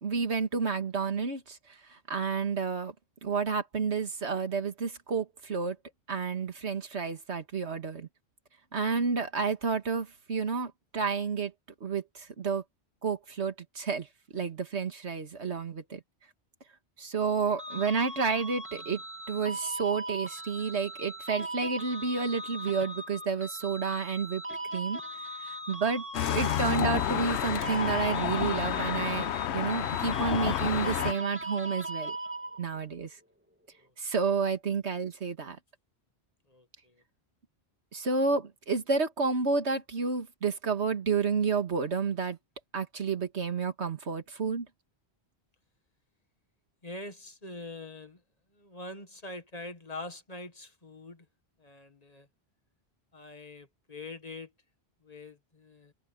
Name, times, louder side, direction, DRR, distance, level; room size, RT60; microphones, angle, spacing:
voice 1, 0.0-1.6 2.1-2.9 3.2-5.8 6.1-8.1 8.7-11.5 11.8-12.6 13.0-14.1 14.3-16.0 17.0-19.0 19.3-24.4 24.7-25.0 25.4-32.1 32.6-33.1 34.0-35.6 37.9-42.4 42.7-44.7, right 5 dB, 85° right, 2.1 m, -30 dB
sound 1, 17.6-32.8, right 1 dB, 10° right, 2.5 m, -39 dB
sound 2, 26.1-31.1, left 11 dB, 85° left, 1.0 m, -30 dB
voice 2, 36.5-36.9 46.8-48.2 48.6-51.2 51.6-52.3 53.1-54.5 55.0-55.9, left 2 dB, 35° left, 1.6 m, -44 dB
omnidirectional pair, 1.1 m